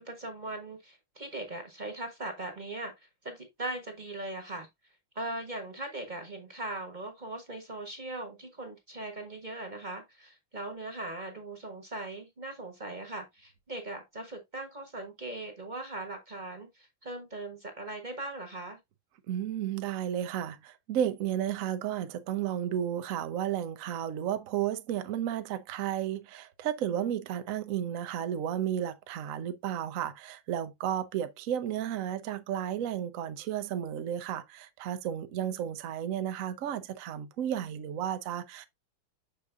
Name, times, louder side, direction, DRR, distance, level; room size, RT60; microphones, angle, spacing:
voice 1, 0.0-4.7 5.1-18.8 26.9-27.2 35.4-35.6, right 2 dB, 30° right, 1.0 m, -40 dB
voice 2, 19.3-38.6, right 10 dB, 80° right, 0.7 m, -33 dB
6.4 x 6.4 x 2.4 m
omnidirectional pair, 2.3 m